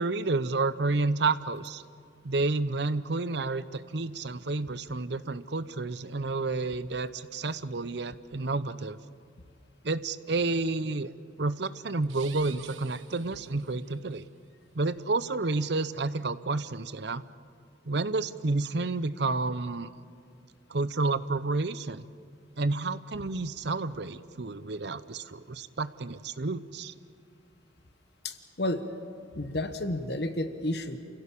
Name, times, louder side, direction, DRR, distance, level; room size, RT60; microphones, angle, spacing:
voice 1, 0.0-1.8 2.2-9.0 9.8-11.1 11.4-14.3 14.7-17.2 17.9-19.9 20.7-22.1 22.6-26.9, right 3 dB, 60° right, 14 dB, 0.8 m, -30 dB
sound 1, 12.0-14.0, right 9 dB, 85° right, 1.2 m, -49 dB
voice 2, 28.2-28.8 29.3-31.0, left 1 dB, 55° left, 9 dB, 1.2 m, -31 dB
28.5 x 16.5 x 8.6 m, 2.3 s
head